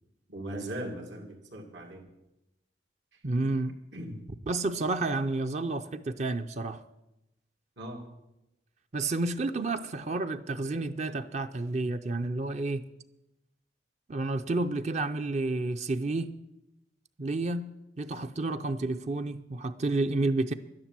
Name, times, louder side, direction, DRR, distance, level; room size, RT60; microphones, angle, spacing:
voice 1, 0.3-2.1 3.1-3.5 3.9-4.2 7.8-8.1, right 1 dB, 85° right, 2.3 m, -39 dB
voice 2, 3.2-3.7 4.5-6.8 8.9-12.8 14.1-16.3 17.2-20.5, right 2 dB, 40° right, 0.5 m, -30 dB
11.5 x 10.0 x 7.5 m
head